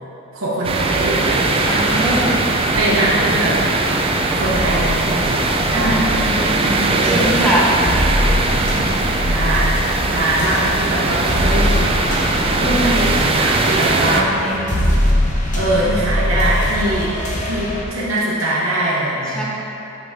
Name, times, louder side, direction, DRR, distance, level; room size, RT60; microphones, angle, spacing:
voice 1, 0.3-1.9 2.8-3.6 4.3-6.2 6.9-7.4 9.3-9.7 10.0-12.0 12.5-14.7 15.6-17.1 17.4-19.4, right 1 dB, 70° right, -9 dB, 1.1 m, -22 dB
sound 1, 0.6-14.2, right 3 dB, 25° right, 0.4 m, -20 dB
voice 2, 1.6-2.4 5.7-7.7 8.5-8.8 12.6-13.0 14.0-14.7 19.3-19.4, equal, 5° left, -7 dB, 1.1 m, -23 dB
sound 2, 2.6-17.8, left 1 dB, 35° left, 0.9 m, -23 dB
6.2 x 5.9 x 3.7 m, 3.0 s
head